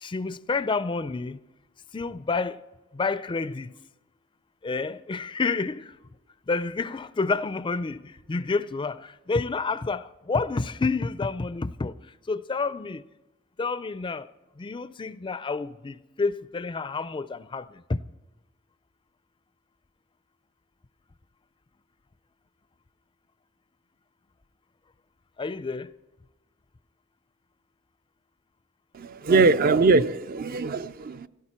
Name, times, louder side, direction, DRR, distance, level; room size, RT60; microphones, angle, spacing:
voice 1, 0.0-1.4 1.9-2.6 2.9-3.7 4.6-5.9 6.5-8.0 8.3-11.9 12.3-13.0 13.6-14.3 14.6-18.0 25.4-25.9, left 4 dB, 25° left, 0.4 m, -29 dB
voice 2, 28.9-31.3, right 3 dB, 45° right, 0.4 m, -22 dB
17.0 x 16.5 x 4.3 m
head